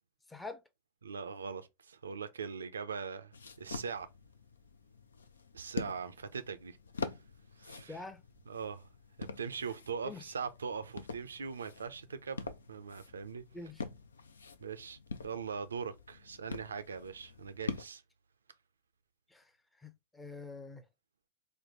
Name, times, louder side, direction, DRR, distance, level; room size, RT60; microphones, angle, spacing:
voice 1, 0.3-0.6 7.9-8.2 10.0-10.2 13.5-13.8 19.3-19.5 19.8-20.8, left 3 dB, 10° left, 0.6 m, -45 dB
voice 2, 1.0-3.3 3.6-4.1 5.5-7.1 7.6-8.0 8.5-8.9 9.2-13.4 14.6-15.0 15.2-18.0, right 6 dB, 70° right, 0.5 m, -41 dB
sound 1, 3.3-17.8, left 4 dB, 70° left, 0.4 m, -45 dB
4.4 x 2.2 x 3.1 m
figure-of-eight pair, 90°, 0 cm